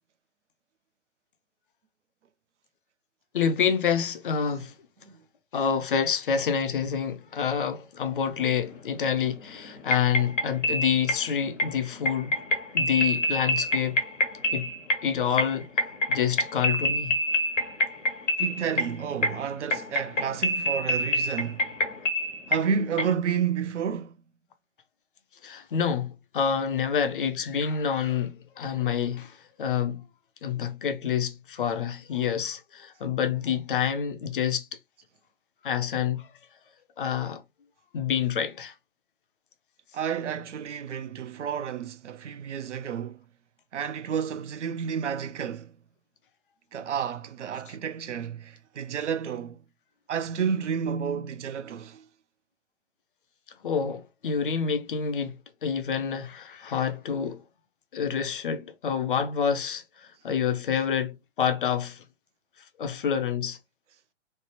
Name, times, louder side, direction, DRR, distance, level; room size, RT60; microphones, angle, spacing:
voice 1, 3.3-4.7 5.5-12.3 12.7-14.0 14.5-14.7 15.0-17.2 25.4-30.0 30.4-34.7 35.6-36.3 37.0-37.4 37.9-38.7 47.7-47.8 53.6-57.4 57.9-62.0 62.8-63.6, left 7 dB, 45° left, 0.5 m, -28 dB
sound 1, 8.4-9.2 9.5-15.1 15.4-22.7 23.0-23.1, left 1 dB, 75° left, 1.0 m, -27 dB
voice 2, 18.4-21.7 22.5-24.2 39.9-43.2 43.7-45.7 46.7-49.6 50.1-52.0, right 7 dB, 70° right, 0.5 m, -30 dB
3.2 x 2.0 x 3.1 m
figure-of-eight pair, 130°, 37 cm